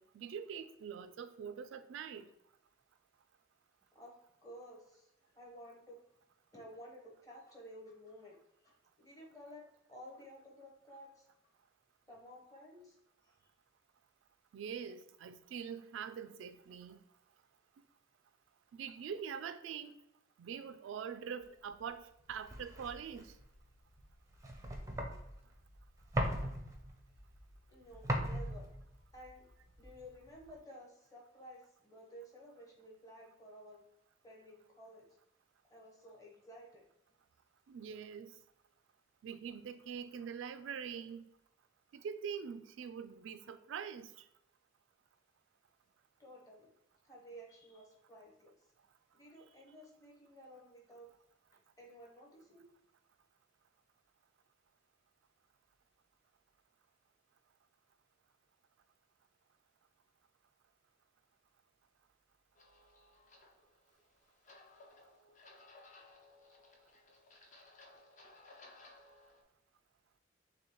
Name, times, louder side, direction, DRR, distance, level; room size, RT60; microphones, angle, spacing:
voice 1, 0.0-2.3 14.5-17.0 18.7-20.0 20.4-23.3 37.7-38.3 39.2-41.3 41.9-44.3, right 7 dB, 75° right, 0.3 m, -44 dB
voice 2, 4.4-5.1 5.3-6.0 6.5-8.4 8.6-11.3 12.1-13.0 13.2-13.5 27.7-28.7 29.1-29.4 29.8-33.8 34.2-35.1 35.7-36.9 46.2-46.7 47.0-48.6 49.1-51.1 51.5-52.6, equal, 20° left, 1.0 m, -54 dB
sound 1, 21.6-30.6, right 1 dB, 15° right, 0.5 m, -41 dB
sound 2, 62.6-69.4, left 2 dB, 40° left, 0.6 m, -60 dB
6.2 x 2.3 x 2.9 m
head